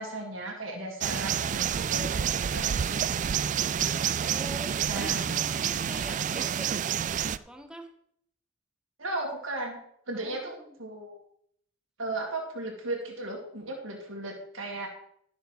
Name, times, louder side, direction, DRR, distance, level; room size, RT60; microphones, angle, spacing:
voice 1, 0.0-2.9 3.4-3.9 4.9-5.2 9.0-9.8 10.1-11.2 12.0-14.9, right 2 dB, 85° right, 0 dB, 2.1 m, -36 dB
sound 1, 1.0-7.4, right 8 dB, 40° right, 0.3 m, -28 dB
voice 2, 4.2-6.7 7.2-7.9 10.1-10.8, right 1 dB, 5° right, 4 dB, 1.0 m, -44 dB
12.5 x 6.4 x 4.9 m, 0.68 s
head